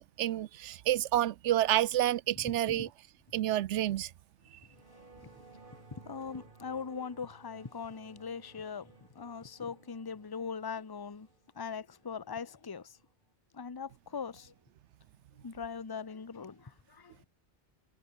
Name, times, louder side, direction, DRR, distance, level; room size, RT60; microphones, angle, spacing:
voice 1, 0.0-2.9 3.3-4.1, right 13 dB, 85° right, 0.9 m, -29 dB
voice 2, 2.5-2.9 5.0-5.1 5.9-11.3 11.6-12.9 13.5-14.5 15.4-17.3, left 6 dB, 20° left, 0.8 m, -41 dB
sound 1, 4.6-13.3, right 3 dB, 50° right, 2.2 m, -58 dB
omnidirectional pair, 1.2 m